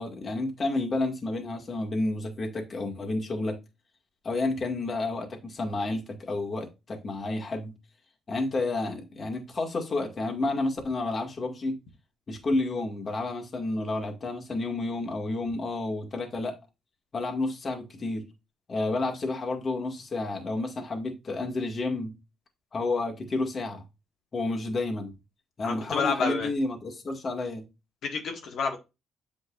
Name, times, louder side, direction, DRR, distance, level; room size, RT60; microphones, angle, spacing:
voice 1, 0.0-3.6 4.2-7.7 8.3-11.8 12.3-16.5 17.1-18.3 18.7-22.2 22.7-23.8 24.3-25.1 25.6-27.6, left 2 dB, 40° left, 2.1 m, -30 dB
voice 2, 25.6-26.5 28.0-28.8, left 5 dB, 70° left, 1.7 m, -29 dB
8.2 x 5.2 x 2.5 m
cardioid pair, 90°, 0 cm